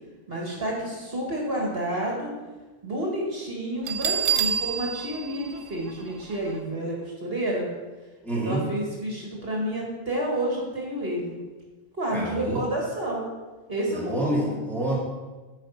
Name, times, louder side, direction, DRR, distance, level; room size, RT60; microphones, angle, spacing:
voice 1, 0.3-2.3 2.8-7.7 8.4-11.4 12.0-13.2 13.7-14.5, right 1 dB, 50° right, -2 dB, 2.0 m, -30 dB
Bell, 3.9-6.6, right 7 dB, 85° right, 1.1 m, -28 dB
voice 2, 8.2-8.7 12.1-12.6 13.9-15.0, right 1 dB, ahead, -5 dB, 1.9 m, -28 dB
8.7 x 5.1 x 5.6 m, 1.2 s
omnidirectional pair, 1.3 m